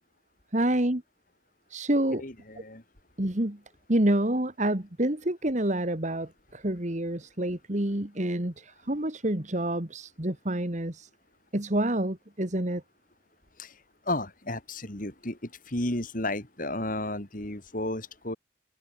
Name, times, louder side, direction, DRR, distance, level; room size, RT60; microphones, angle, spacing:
voice 1, 0.5-1.0 1.7-2.2 3.2-3.6 3.9-11.1 11.5-12.8, right 1 dB, 40° right, 1.9 m, -28 dB
voice 2, 2.1-2.8 13.6-13.7 14.1-15.4 15.7-18.4, left 2 dB, 45° left, 3.1 m, -33 dB
head